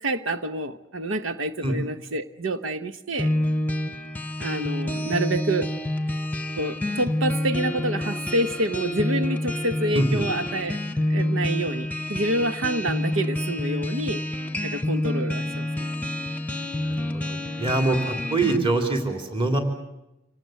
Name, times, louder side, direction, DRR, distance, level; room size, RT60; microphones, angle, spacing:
voice 1, 0.0-3.3 4.4-5.7 6.6-10.8 11.1-14.2 14.6-15.9, right 1 dB, 80° right, 11 dB, 1.0 m, -27 dB
sound 1, 3.2-18.6, left 1 dB, 10° left, 1.0 m, -28 dB
voice 2, 9.9-10.3 16.8-19.6, right 2 dB, 25° right, 4 dB, 3.4 m, -24 dB
26.5 x 18.5 x 9.3 m, 0.88 s
head